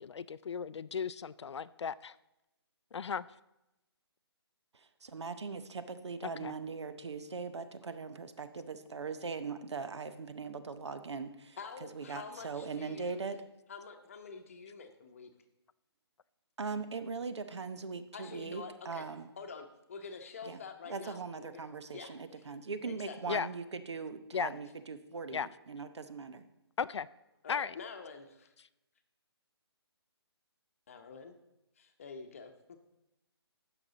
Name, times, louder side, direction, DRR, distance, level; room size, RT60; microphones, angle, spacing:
voice 1, 0.0-2.1 2.9-3.3 6.2-6.5 23.3-23.5 24.3-24.5 25.3-25.5 26.8-27.1 27.5-27.7, left 6 dB, 90° left, 16 dB, 0.4 m, -36 dB
voice 2, 4.7-13.4 16.6-19.3 20.4-26.4, right 4 dB, 85° right, 11 dB, 0.9 m, -40 dB
voice 3, 11.6-13.2 13.7-15.3 18.1-19.0 19.4-21.6 21.9-22.5 22.9-23.4 27.4-28.5 30.9-31.3 31.8-32.5, left 5 dB, 30° left, 6 dB, 0.8 m, -47 dB
15.0 x 6.0 x 4.0 m, 0.92 s
hypercardioid pair, 170°, 14 cm